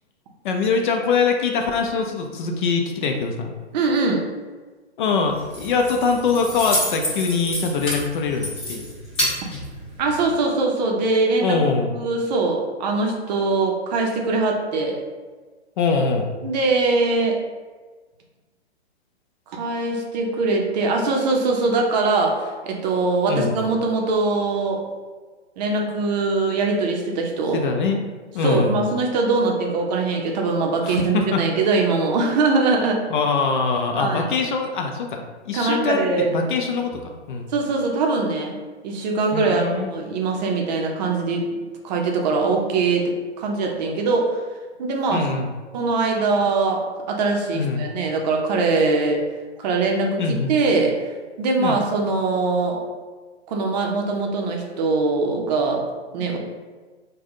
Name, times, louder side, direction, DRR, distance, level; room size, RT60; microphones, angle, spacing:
voice 1, 0.4-3.5 5.0-8.9 11.4-11.9 15.8-16.3 23.3-23.6 27.5-28.0 28.3-28.8 30.8-31.7 33.1-37.5 39.3-39.9 45.1-45.5 47.5-47.9 50.2-50.6 51.6-51.8 56.2-56.4, left 4 dB, 45° left, 3 dB, 0.5 m, -23 dB
voice 2, 3.7-4.2 10.0-11.6 11.9-15.0 16.4-17.4 19.5-24.8 25.6-27.6 28.4-33.0 33.9-34.3 35.5-36.3 37.5-38.6 38.8-44.4 44.8-45.3 45.7-49.2 49.6-50.9 51.4-52.8 53.5-55.8 56.1-56.4, right 3 dB, 40° right, 1 dB, 0.6 m, -22 dB
Keys jangling, 5.3-10.3, left 1 dB, 15° left, 1.1 m, -29 dB
3.4 x 2.2 x 3.6 m, 1.4 s
hypercardioid pair, 120°, 34 cm